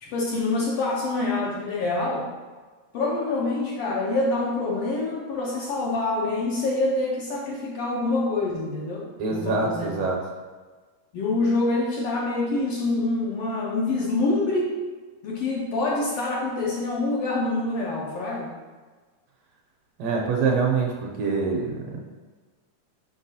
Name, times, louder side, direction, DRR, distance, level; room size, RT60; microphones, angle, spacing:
voice 1, 0.0-2.3 2.9-10.1 11.1-14.7 15.2-18.5, left 2 dB, 70° left, -3 dB, 1.5 m, -26 dB
voice 2, 9.2-10.2 20.0-22.0, right 4 dB, 75° right, -1 dB, 1.7 m, -25 dB
6.0 x 5.9 x 2.7 m, 1.4 s
omnidirectional pair, 3.3 m